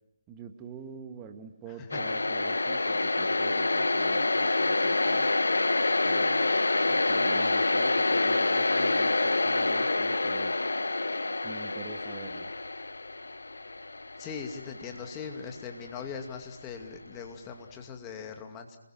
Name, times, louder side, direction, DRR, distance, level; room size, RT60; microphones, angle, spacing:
voice 1, 0.3-5.3 6.0-6.5 6.9-10.6 11.4-12.5, right 6 dB, 15° right, 6 dB, 1.6 m, -45 dB
sound 1, 1.9-15.7, left 2 dB, 70° left, 1.1 m, -27 dB
voice 2, 14.2-18.8, left 6 dB, 15° left, 4 dB, 2.4 m, -40 dB
29.5 x 21.5 x 6.0 m, 0.88 s
figure-of-eight pair, 150°, 0 cm